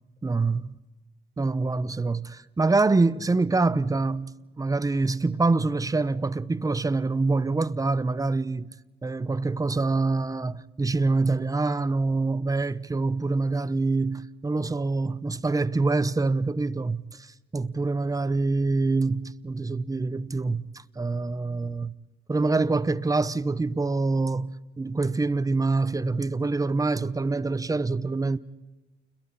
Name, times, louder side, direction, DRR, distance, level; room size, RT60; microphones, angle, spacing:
voice 1, 0.2-0.7 1.4-8.7 9.0-20.7 21.0-21.9 22.3-28.4, right 3 dB, 15° right, 0.8 m, -25 dB
29.5 x 22.0 x 4.2 m
cardioid pair, 90°, 20 cm